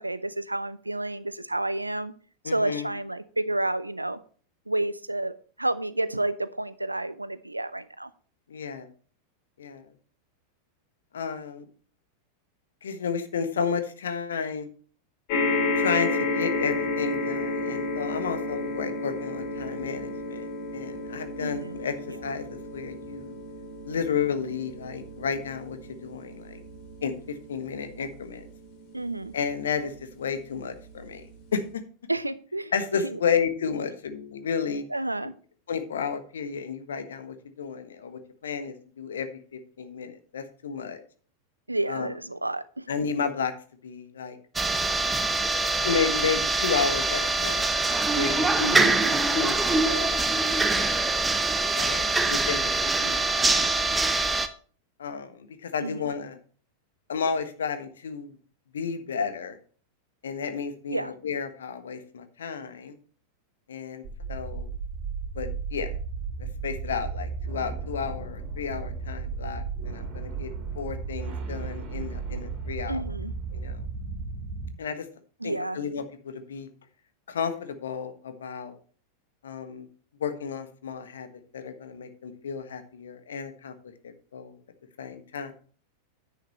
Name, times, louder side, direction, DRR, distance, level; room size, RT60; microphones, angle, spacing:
voice 1, 0.0-2.1 2.4-4.2 4.7-8.1 21.4-21.8 28.9-29.3 32.1-32.7 33.1-33.2 34.9-35.4 41.7-42.9 48.6-48.9 55.8-56.0 60.9-61.1 72.9-73.3 75.4-75.8, right 2 dB, 85° right, 16 dB, 0.6 m, -30 dB
voice 2, 2.4-2.9 8.5-8.9 9.6-9.9 11.1-11.6 12.8-14.7 15.8-23.4 23.9-26.6 27.0-28.5 29.3-31.8 32.7-34.8 35.7-41.0 41.9-42.1 42.9-43.5 43.8-44.4 45.8-47.8 48.0-50.2 50.5-51.1 51.7-54.1 55.0-56.4 57.1-58.4 58.7-59.6 60.2-62.9 63.7-64.0 64.3-64.7 65.3-65.9 66.4-73.0 73.5-73.8 74.8-75.1 75.4-76.7 77.3-78.7 79.4-79.9 80.2-81.3 81.5-83.7 84.0-84.6 85.0-85.5, left 6 dB, 65° left, 9 dB, 1.3 m, -32 dB
sound 1, 15.3-29.8 30.6-30.7 31.0-31.1, left 2 dB, 45° left, 2.7 m, -32 dB
sound 2, 44.6-54.5, right 3 dB, 10° right, 0.9 m, -24 dB
sound 3, 64.0-74.7, right 5 dB, 35° right, 2.6 m, -34 dB
10.5 x 8.5 x 3.1 m, 0.42 s
figure-of-eight pair, 90°, 0 cm